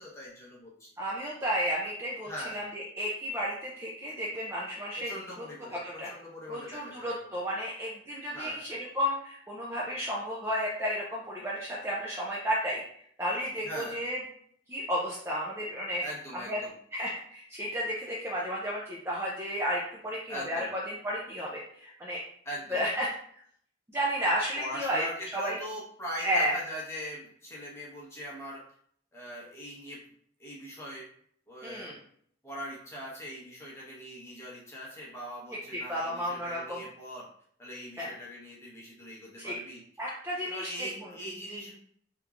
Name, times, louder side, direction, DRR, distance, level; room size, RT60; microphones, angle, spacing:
voice 1, 0.0-0.9 2.3-2.6 5.0-7.3 8.3-8.6 13.6-14.0 16.0-16.7 20.3-20.7 22.4-22.9 24.6-28.6 29.1-30.0 30.4-31.1 31.5-31.9 32.4-37.3 37.6-39.8 40.4-41.7, equal, 15° left, -5 dB, 0.9 m, -41 dB
voice 2, 1.0-5.1 5.4-5.5 5.8-6.1 6.5-12.8 13.2-14.2 14.7-16.0 16.5-16.6 16.9-22.2 22.7-23.1 23.9-25.6 26.2-26.5 31.6-32.0 35.7-36.8 38.0-38.1 39.4-39.6 40.0-40.7, equal, 15° right, -4 dB, 0.4 m, -32 dB
3.6 x 2.9 x 2.4 m, 0.63 s
head